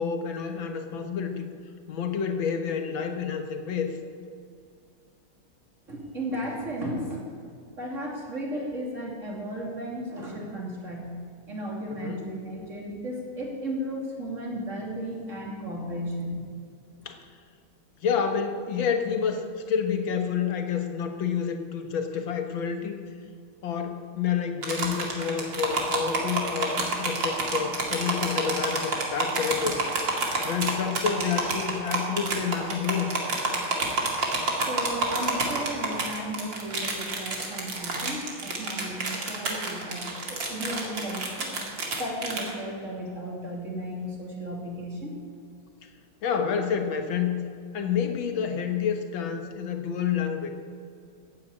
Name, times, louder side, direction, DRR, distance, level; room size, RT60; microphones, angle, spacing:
voice 1, 0.0-1.5 1.9-3.9 11.9-12.2 17.1-17.2 18.0-23.0 23.6-29.8 30.4-33.1 45.8-45.9 46.2-47.5 47.7-50.5, left 7 dB, 75° left, 6 dB, 2.1 m, -29 dB
voice 2, 5.9-7.4 7.8-11.1 11.5-16.5 16.9-17.0 34.7-41.6 42.0-45.2, equal, 35° right, -2 dB, 3.2 m, -34 dB
sound 1, 24.6-42.5, right 3 dB, 65° right, 3.0 m, -29 dB
14.5 x 9.5 x 8.5 m, 2.3 s
omnidirectional pair, 2.2 m